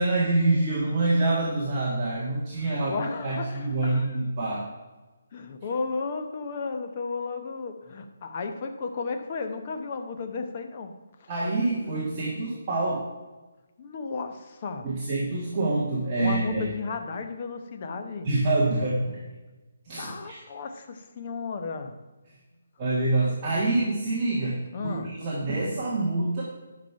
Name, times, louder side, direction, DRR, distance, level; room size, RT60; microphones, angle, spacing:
voice 1, 0.0-2.9 3.2-4.6 11.3-13.0 14.8-16.6 18.2-19.2 19.8-20.4 22.8-26.4, right 2 dB, 20° right, -6 dB, 1.5 m, -26 dB
voice 2, 2.6-4.2 5.3-11.3 13.8-14.9 16.2-18.3 20.0-21.9 24.7-25.1, left 4 dB, 30° left, 5 dB, 0.9 m, -34 dB
10.5 x 6.0 x 5.7 m, 1.2 s
hypercardioid pair, 175°, 0 cm